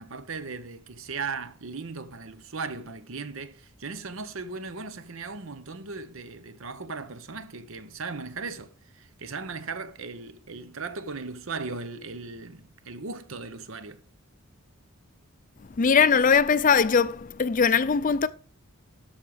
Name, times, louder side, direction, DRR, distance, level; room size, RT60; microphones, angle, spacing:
voice 1, 0.0-14.0, right 4 dB, 65° right, 0.9 m, -37 dB
voice 2, 15.8-18.3, left 6 dB, 35° left, 0.4 m, -21 dB
13.0 x 5.1 x 4.9 m
head